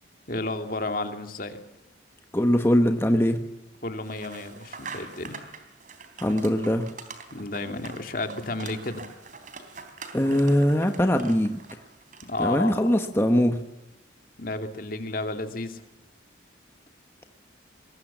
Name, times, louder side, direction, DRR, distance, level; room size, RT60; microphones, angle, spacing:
voice 1, 0.3-1.6 3.8-5.4 7.3-9.0 12.3-12.7 14.4-15.8, left 2 dB, 50° left, 6 dB, 2.5 m, -32 dB
voice 2, 2.3-3.4 6.2-6.9 10.1-11.6 12.4-13.7, equal, 15° left, 6 dB, 1.1 m, -22 dB
Trash Compactor Compression, 4.0-12.5, right 4 dB, 45° right, 3.5 m, -44 dB
24.0 x 21.0 x 7.3 m, 0.92 s
head